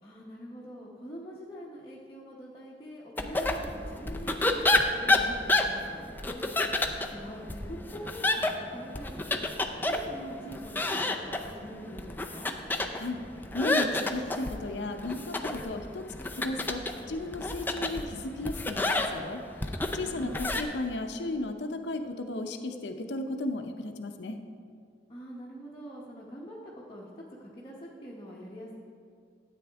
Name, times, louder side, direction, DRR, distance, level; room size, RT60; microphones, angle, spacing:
voice 1, 0.0-6.5 7.1-9.5 9.8-12.5 20.0-20.6 25.1-28.7, equal, 25° left, -6 dB, 1.0 m, -44 dB
sound 1, 3.2-20.6, left 2 dB, 10° left, 0.5 m, -30 dB
voice 2, 13.5-19.4 19.9-24.4, left 2 dB, 75° left, 6 dB, 0.7 m, -35 dB
13.0 x 8.5 x 3.5 m, 2.3 s
head